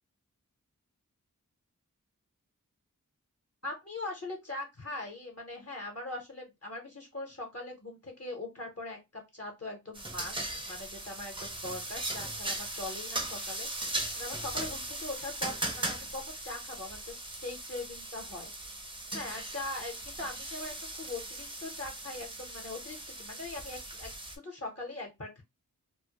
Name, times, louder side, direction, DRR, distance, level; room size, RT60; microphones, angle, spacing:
voice 1, 3.6-13.7 14.2-18.5 19.1-25.4, left 2 dB, 45° left, 1 dB, 0.9 m, -41 dB
sound 1, 9.9-24.4, right 1 dB, 15° right, 0.5 m, -38 dB
2.1 x 2.1 x 2.8 m, 0.22 s
wide cardioid pair, 40°, 33 cm